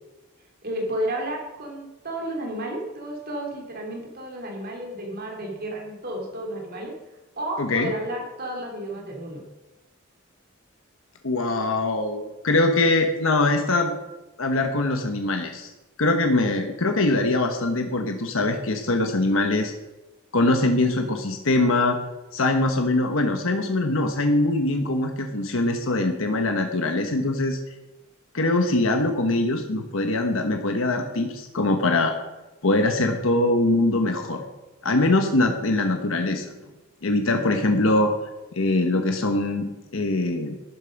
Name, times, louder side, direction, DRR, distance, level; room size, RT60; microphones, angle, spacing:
voice 1, 0.6-6.9 7.3-9.4, right 1 dB, 50° right, 0 dB, 3.1 m, -32 dB
voice 2, 7.6-7.9 11.2-13.9 14.4-15.7 16.0-19.7 20.3-22.0 22.3-27.6 28.3-32.1 32.6-34.4 34.8-36.4 37.0-38.1 38.5-40.5, left 2 dB, 70° left, 5 dB, 1.2 m, -22 dB
12.0 x 9.7 x 5.3 m, 1.1 s
head